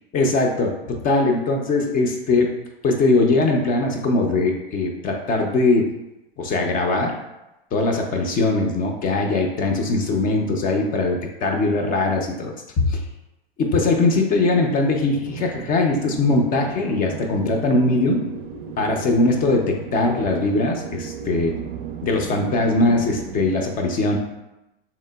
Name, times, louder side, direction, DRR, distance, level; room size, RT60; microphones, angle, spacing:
voice 1, 0.1-2.6 2.8-5.9 6.4-7.2 7.7-13.0 13.6-18.2 18.8-21.6 22.0-24.2, left 2 dB, 30° left, 3 dB, 0.5 m, -21 dB
sound 1, 15.2-23.6, right 6 dB, 55° right, 0.4 m, -35 dB
3.6 x 2.9 x 2.2 m, 0.95 s
hypercardioid pair, 95°, 30 cm